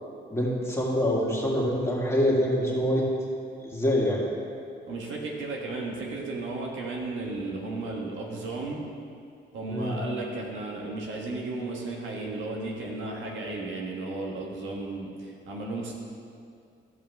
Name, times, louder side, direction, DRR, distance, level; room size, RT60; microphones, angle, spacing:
voice 1, 0.3-3.1 3.6-4.2 9.7-10.0, equal, 15° left, -4 dB, 2.1 m, -25 dB
voice 2, 4.9-8.8 9.5-15.9, right 2 dB, 75° right, -1 dB, 1.4 m, -34 dB
14.0 x 5.5 x 3.5 m, 2.4 s
cardioid pair, 90°, 20 cm